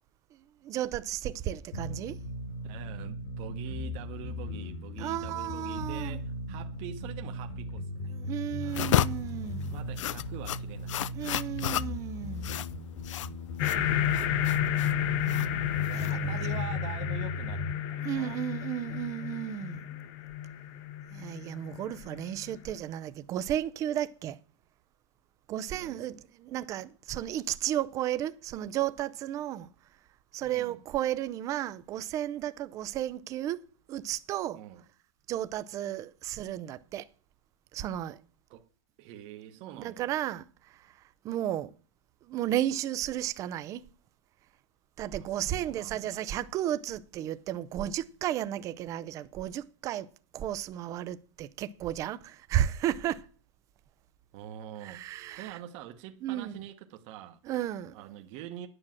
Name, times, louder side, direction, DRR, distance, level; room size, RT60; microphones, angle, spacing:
voice 1, 0.6-2.2 5.0-6.2 8.1-9.7 11.1-12.6 16.0-16.4 18.0-19.9 21.1-24.4 25.5-29.7 30.3-33.6 33.9-34.6 35.3-37.1 37.7-38.2 39.8-40.4 41.2-41.7 42.3-43.8 45.0-50.1 50.3-53.2 54.8-55.6 56.2-56.5 57.5-57.9, right 12 dB, 20° right, 0.4 m, -33 dB
sound 1, 1.7-17.7, left 1 dB, 65° left, 2.3 m, -37 dB
voice 2, 2.6-8.1 8.6-9.0 9.7-11.3 15.9-17.6 17.9-18.4 25.7-26.2 30.4-30.8 34.5-34.8 38.5-38.7 39.0-40.1 45.0-46.5 54.3-55.0 55.4-57.4 57.9-58.7, right 11 dB, 35° right, 1.0 m, -45 dB
sound 2, 8.7-16.6, left 12 dB, 85° left, 0.5 m, -33 dB
sound 3, 13.6-22.5, left 11 dB, 35° left, 0.8 m, -32 dB
9.8 x 6.2 x 7.4 m
supercardioid pair, 160°, 16 cm